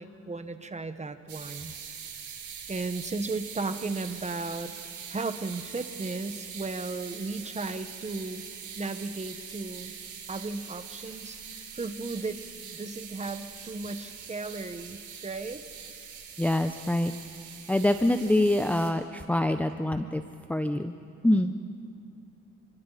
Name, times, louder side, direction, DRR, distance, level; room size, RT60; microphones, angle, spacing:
voice 1, 0.0-1.7 2.7-4.7 5.1-8.4 8.8-9.9 10.3-11.4 11.7-15.6, right 3 dB, 20° right, 9 dB, 1.4 m, -35 dB
sound 1, 1.3-18.9, right 7 dB, 75° right, 4.2 m, -43 dB
voice 2, 16.4-17.1 17.7-20.2 20.5-20.9 21.2-21.5, left 1 dB, 5° left, 7 dB, 0.7 m, -25 dB
28.5 x 23.0 x 4.2 m, 2.8 s
cardioid pair, 90°, 30 cm